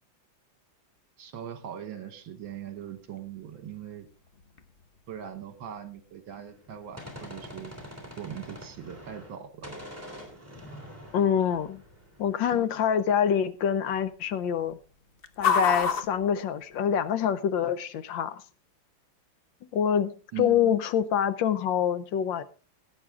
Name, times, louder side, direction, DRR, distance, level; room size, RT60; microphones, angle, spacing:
voice 1, 1.2-4.1 5.1-7.7 8.2-9.7 12.5-12.7 20.3-20.7, right 9 dB, 70° right, 2.0 m, -40 dB
sound 1, 2.4-17.2, left 5 dB, 50° left, 0.6 m, -37 dB
Gunshot gunfire, 6.5-9.4 9.6-12.4, equal, 5° right, 3.0 m, -45 dB
voice 2, 11.1-11.8 12.2-14.8 15.4-18.4 19.7-22.4, left 8 dB, 70° left, 1.4 m, -26 dB
16.5 x 8.7 x 3.6 m
omnidirectional pair, 2.2 m